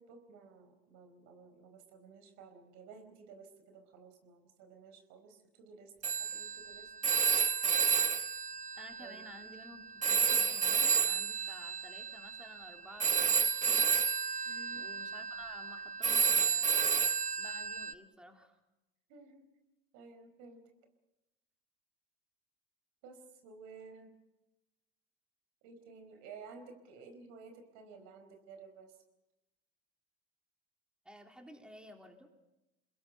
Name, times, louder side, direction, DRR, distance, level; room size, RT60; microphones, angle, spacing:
voice 1, 0.0-6.9 9.0-9.2 14.4-14.9 19.1-19.5 19.9-20.6 23.0-24.1 25.6-29.0, right 4 dB, 60° right, 6 dB, 5.0 m, -54 dB
Telephone, 6.0-9.7 10.0-17.9, right 6 dB, 25° right, 0.9 m, -31 dB
voice 2, 8.8-9.8 10.1-13.9 14.2-14.4 14.7-17.0 17.4-18.6 31.0-32.3, equal, 5° right, 3 dB, 3.5 m, -54 dB
29.0 x 21.0 x 5.7 m, 0.96 s
hypercardioid pair, 70°, 32 cm